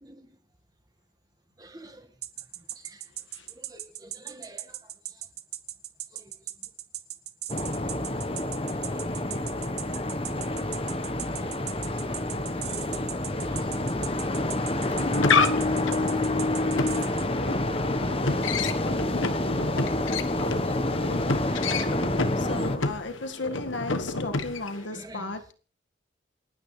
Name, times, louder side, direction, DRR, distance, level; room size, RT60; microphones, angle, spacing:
voice 1, 1.6-2.1 2.8-3.0 3.6-4.9 6.1-6.3 8.6-9.2 11.4-11.5 12.5-12.7 13.5-13.7 14.0-15.1 20.1-22.0 24.7-25.3, right 1 dB, 20° right, 7 dB, 1.7 m, -49 dB
sound 1, 2.2-17.2, right 13 dB, 55° right, 1.3 m, -37 dB
sound 2, 7.5-22.8, left 1 dB, 30° left, 1.3 m, -28 dB
sound 3, 14.8-24.8, left 4 dB, 85° left, 1.4 m, -29 dB
voice 2, 22.4-25.5, left 2 dB, 70° left, 7 dB, 1.9 m, -35 dB
28.5 x 9.6 x 3.4 m, 0.37 s
head